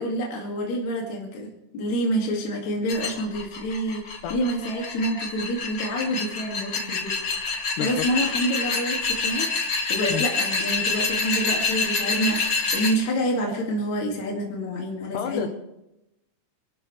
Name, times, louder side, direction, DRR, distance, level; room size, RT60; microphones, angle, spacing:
voice 1, 0.0-7.1 7.8-9.5 9.9-15.5, equal, 65° left, -1 dB, 3.5 m, -27 dB
sound 1, 2.9-12.9, left 4 dB, 40° left, 2.0 m, -27 dB
voice 2, 15.1-15.5, left 9 dB, 80° left, 6 dB, 2.5 m, -30 dB
26.5 x 13.0 x 3.2 m, 0.88 s
omnidirectional pair, 3.6 m